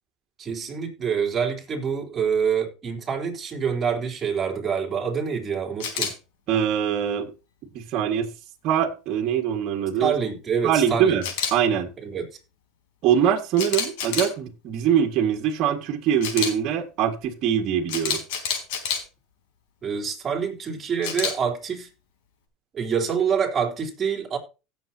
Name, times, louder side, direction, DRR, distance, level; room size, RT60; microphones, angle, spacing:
voice 1, 0.4-6.1 10.0-11.2 12.0-12.3 19.8-21.9 22.7-24.4, right 6 dB, 25° right, 3.7 m, -26 dB
Camera, 5.8-6.1 11.2-11.5 13.6-14.3 16.2-16.5 17.9-19.0 21.0-21.3, left 7 dB, 80° left, 3.7 m, -27 dB
voice 2, 6.5-7.3 7.7-8.3 8.6-10.1 10.6-11.2 11.5-11.9 13.0-18.2, right 9 dB, 55° right, 1.9 m, -23 dB
17.0 x 7.3 x 2.8 m
supercardioid pair, 120°, 0 cm